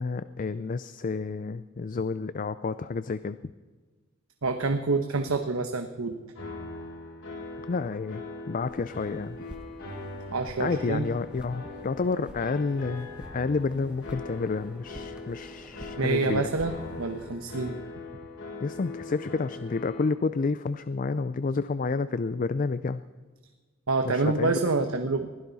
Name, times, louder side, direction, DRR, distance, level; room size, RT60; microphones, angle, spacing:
voice 1, 0.0-3.4 7.7-9.5 10.6-16.5 18.6-23.0 24.1-24.5, left 4 dB, 40° left, 14 dB, 0.4 m, -30 dB
voice 2, 4.4-6.2 10.3-11.1 16.0-17.8 23.9-25.3, right 3 dB, 80° right, 6 dB, 1.0 m, -27 dB
sound 1, 6.3-20.1, left 2 dB, 70° left, 5.7 m, -41 dB
sound 2, 8.6-17.4, equal, 5° right, 1.0 m, -49 dB
22.0 x 16.0 x 4.1 m, 1.4 s
head